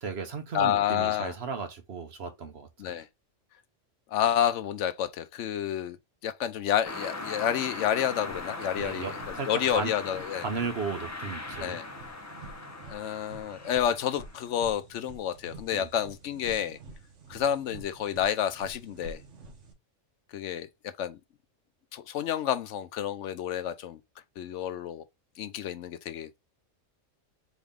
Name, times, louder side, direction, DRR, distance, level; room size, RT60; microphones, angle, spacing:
voice 1, 0.0-2.9 8.8-10.0 10.4-11.8 15.7-15.9, right 5 dB, 60° right, 1.2 m, -35 dB
voice 2, 0.5-1.3 2.8-3.1 4.1-6.0 6.2-10.4 11.6-11.9 12.9-16.8 17.3-19.2 20.3-21.2 21.9-24.0 24.4-25.0 25.4-26.4, left 10 dB, 75° left, 0.9 m, -29 dB
sound 1, 6.8-14.5, left 2 dB, 15° left, 0.6 m, -40 dB
sound 2, 8.1-19.7, right 3 dB, 75° right, 1.5 m, -49 dB
4.1 x 3.5 x 3.5 m
omnidirectional pair, 1.3 m